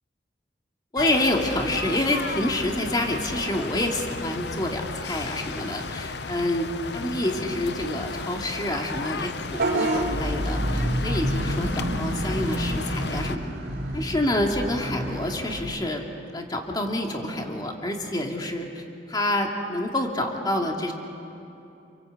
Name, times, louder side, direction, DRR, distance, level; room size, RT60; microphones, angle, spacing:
voice 1, 0.9-13.5 13.9-16.1 16.3-20.9, left 1 dB, 25° left, 2 dB, 2.4 m, -28 dB
sound 1, 1.0-13.4, left 4 dB, 65° left, 0.7 m, -34 dB
Vehicle horn car horn honking / Bus, 9.5-15.6, right 1 dB, 60° right, 3.8 m, -28 dB
29.0 x 23.0 x 8.2 m, 2.8 s
head